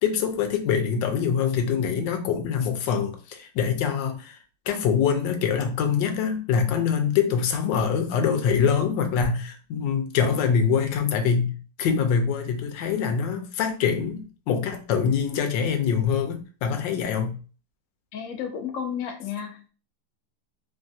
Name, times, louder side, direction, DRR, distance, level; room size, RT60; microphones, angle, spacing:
voice 1, 0.0-4.4 4.7-17.4, left 7 dB, 85° left, 6 dB, 1.3 m, -24 dB
voice 2, 18.1-19.7, left 8 dB, 65° left, 4 dB, 0.8 m, -32 dB
3.2 x 2.3 x 2.6 m, 0.37 s
omnidirectional pair, 2.0 m